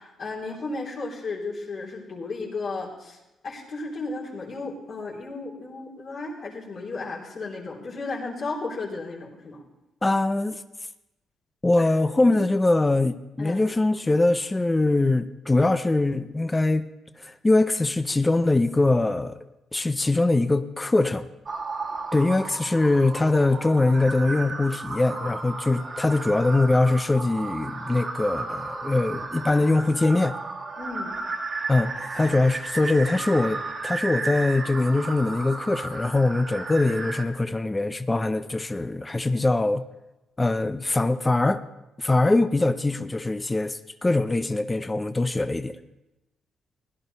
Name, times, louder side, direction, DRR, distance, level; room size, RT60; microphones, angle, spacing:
voice 1, 0.0-3.2 3.4-9.6 11.8-11.9 12.3-12.4 13.4-13.6 30.8-31.1 43.0-43.1, left 3 dB, 60° left, -5 dB, 3.5 m, -34 dB
voice 2, 10.0-10.6 11.6-16.9 17.2-19.4 19.7-21.3 22.1-30.4 31.7-39.8 40.4-41.6 42.0-45.8, left 2 dB, 15° left, 11 dB, 0.6 m, -22 dB
sound 1, 21.5-37.2, right 3 dB, 40° right, 1.6 m, -34 dB
16.5 x 11.0 x 4.1 m, 0.96 s
cardioid pair, 90°, 0 cm